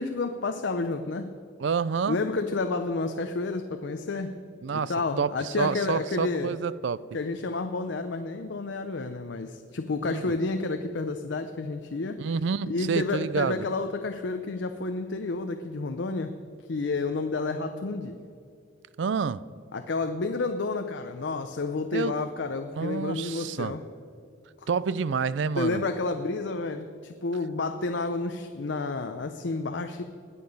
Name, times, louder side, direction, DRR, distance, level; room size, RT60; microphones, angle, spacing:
voice 1, 0.0-1.3 2.1-4.3 4.7-6.6 7.1-12.2 12.7-16.3 16.7-18.2 19.7-23.8 24.6-24.7 25.6-30.0, left 3 dB, 65° left, 0.6 m, -30 dB
voice 2, 1.6-2.2 4.6-4.9 5.2-5.3 5.6-7.0 10.0-10.2 12.2-13.7 19.0-19.4 21.9-22.1 22.7-23.7 24.7-25.8, right 5 dB, 65° right, 0.4 m, -28 dB
19.5 x 6.9 x 5.4 m
head